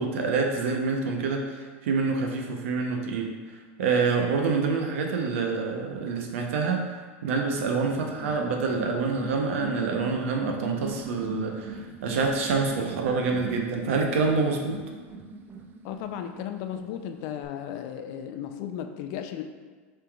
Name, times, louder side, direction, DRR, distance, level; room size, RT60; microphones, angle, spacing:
voice 1, 0.0-3.3 3.8-6.8 7.2-14.7, right 4 dB, 75° right, 2 dB, 0.8 m, -27 dB
sound 1, 7.4-17.4, right 3 dB, 30° right, 0.4 m, -41 dB
voice 2, 15.8-19.5, left 9 dB, 55° left, 7 dB, 0.4 m, -35 dB
6.7 x 3.3 x 2.3 m, 1.5 s
supercardioid pair, 115°, 7 cm